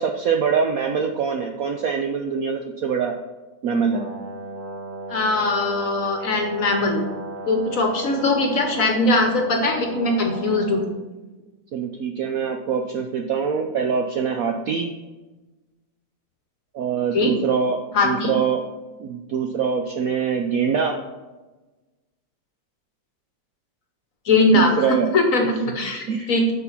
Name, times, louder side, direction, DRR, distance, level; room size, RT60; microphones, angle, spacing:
voice 1, 0.0-3.1 3.6-4.0 11.7-14.9 16.7-18.6 19.0-21.0 24.5-25.1 26.0-26.5, right 6 dB, 70° right, 4 dB, 0.8 m, -24 dB
Brass instrument, 3.9-10.9, right 1 dB, 5° right, 2.1 m, -35 dB
voice 2, 5.1-7.0 7.5-10.8 17.1-17.3 17.9-18.3 24.3-26.5, left 2 dB, 50° left, 3 dB, 1.2 m, -21 dB
6.7 x 4.7 x 5.8 m, 1.2 s
omnidirectional pair, 2.1 m